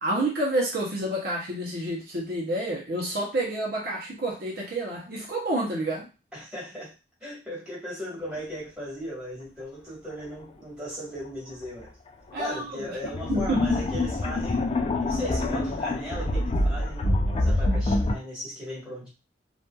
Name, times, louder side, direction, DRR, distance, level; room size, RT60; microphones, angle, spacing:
voice 1, 0.0-6.1 12.3-12.9 13.3-13.7, right 1 dB, 55° right, -2 dB, 0.7 m, -29 dB
voice 2, 6.3-6.9 7.2-11.9 12.4-14.7 15.0-19.1, equal, 5° right, -7 dB, 1.3 m, -37 dB
sound 1, 11.6-11.7 13.0-18.2, left 2 dB, 30° left, 0.3 m, -25 dB
2.7 x 2.4 x 2.2 m, 0.28 s
head